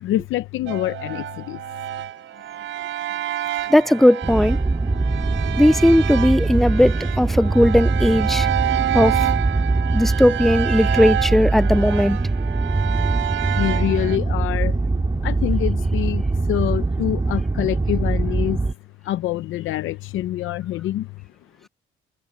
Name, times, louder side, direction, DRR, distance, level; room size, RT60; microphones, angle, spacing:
voice 1, 0.0-1.6 13.6-14.8 15.2-16.2 16.5-18.6 19.1-21.1, left 13 dB, 80° left, 0.7 m, -25 dB
sound 1, 0.7-14.2, right 12 dB, 80° right, 4.1 m, -28 dB
voice 2, 3.7-4.6 5.6-8.5 8.9-9.2 9.9-12.2, left 1 dB, ahead, 0.3 m, -17 dB
sound 2, 4.2-18.7, right 3 dB, 20° right, 2.2 m, -22 dB
cardioid pair, 90°, 20 cm